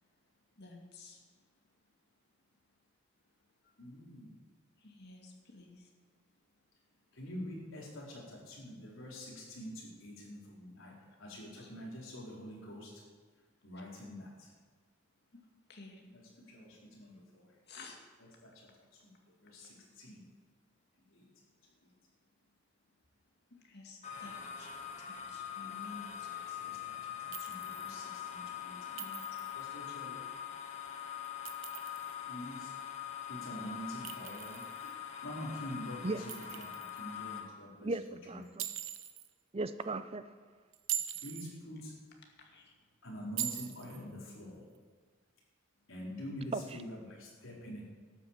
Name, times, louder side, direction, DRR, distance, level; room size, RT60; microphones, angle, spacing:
voice 1, 0.6-1.2 4.8-5.7 11.6-11.7 15.7-16.0 17.7-18.0 23.6-26.4 29.0-29.4 33.9-34.0 34.8-34.9 42.5-42.7, left 3 dB, 50° left, 1 dB, 2.3 m, -52 dB
voice 2, 3.8-4.3 7.1-10.9 11.2-12.9 13.6-14.5 16.1-17.4 18.4-18.7 19.0-19.1 19.4-20.3 21.1-21.3 26.3-29.0 29.5-30.2 32.3-32.7 33.3-34.6 35.2-37.9 38.3-38.4 41.2-41.9 43.0-44.7 45.9-47.8, equal, 70° left, -4 dB, 4.4 m, -46 dB
sound 1, 24.0-37.4, left 9 dB, 35° left, 1.6 m, -43 dB
Chink clink, 27.3-28.0 29.0-29.6 31.2-32.1 34.1-34.9 36.3-37.0 38.6-39.3 40.7-41.5 43.4-44.0, right 11 dB, 65° right, 0.9 m, -41 dB
voice 3, 37.8-38.6 39.5-40.2 46.5-46.8, right 2 dB, 30° right, 12 dB, 0.5 m, -37 dB
12.0 x 8.6 x 7.5 m, 1.6 s
head